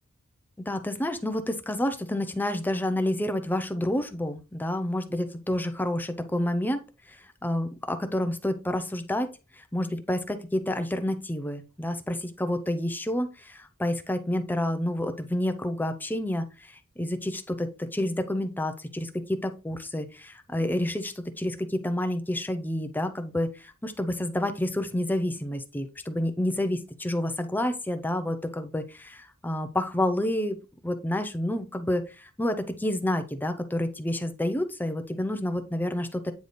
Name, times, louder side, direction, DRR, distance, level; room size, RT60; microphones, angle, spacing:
voice 1, 0.7-6.8 7.1-9.3 9.6-30.6 30.8-36.3, left 1 dB, 10° left, 8 dB, 0.6 m, -29 dB
9.2 x 3.3 x 4.1 m, 0.30 s
head